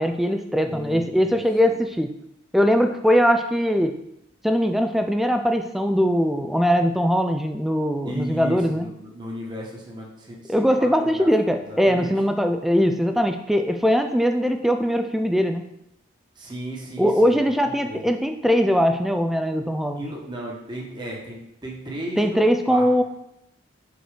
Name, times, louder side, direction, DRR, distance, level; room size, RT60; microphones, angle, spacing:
voice 1, 0.0-2.1 2.5-3.9 4.4-8.9 10.5-15.7 17.0-20.0 22.2-23.0, equal, ahead, 6 dB, 0.3 m, -21 dB
voice 2, 0.6-1.8 8.0-11.3 11.6-12.2 16.3-17.4 17.8-18.1 19.9-22.4 22.7-23.0, right 1 dB, 20° right, -2 dB, 1.2 m, -35 dB
5.2 x 4.4 x 5.0 m, 0.81 s
head